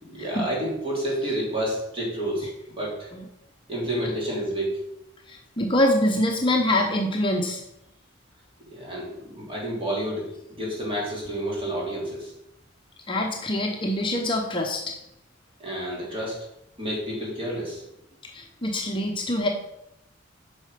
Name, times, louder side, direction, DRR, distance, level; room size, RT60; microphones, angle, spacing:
voice 1, 0.1-3.1 3.7-4.8 8.7-12.3 15.6-16.4 16.8-17.8, right 1 dB, 30° right, -4 dB, 3.3 m, -30 dB
voice 2, 5.3-7.6 13.1-15.0 18.2-19.5, left 1 dB, 25° left, 1 dB, 0.8 m, -25 dB
8.6 x 5.6 x 5.1 m, 0.84 s
head